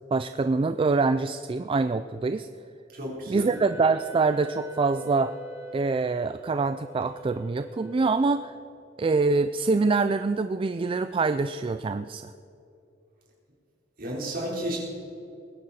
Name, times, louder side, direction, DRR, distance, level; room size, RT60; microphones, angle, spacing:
voice 1, 0.1-2.5 3.3-5.4 5.7-8.5 9.0-12.3, right 4 dB, 30° right, 11 dB, 0.3 m, -25 dB
voice 2, 2.9-3.6 14.0-14.8, right 1 dB, 50° right, -4 dB, 4.1 m, -32 dB
Wind instrument woodwind instrument, 3.5-8.6, right 3 dB, 40° left, 2.4 m, -44 dB
21.0 x 10.0 x 4.3 m, 2.7 s
head